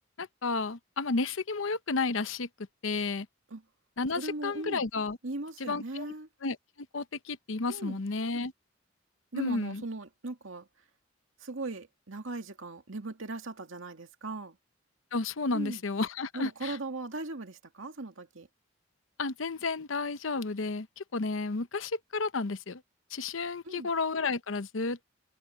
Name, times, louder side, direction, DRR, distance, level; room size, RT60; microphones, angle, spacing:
voice 1, 0.2-2.5 2.8-3.3 4.0-5.2 5.6-6.1 6.4-6.6 6.9-8.5 9.3-9.8 15.1-16.8 19.2-22.8 23.1-25.1, left 3 dB, 85° left, 0.8 m, -32 dB
voice 2, 4.1-4.8 5.2-6.3 7.7-8.0 9.3-10.7 11.4-14.6 15.5-15.8 16.3-18.5 23.6-23.9, right 2 dB, 85° right, 2.1 m, -38 dB
head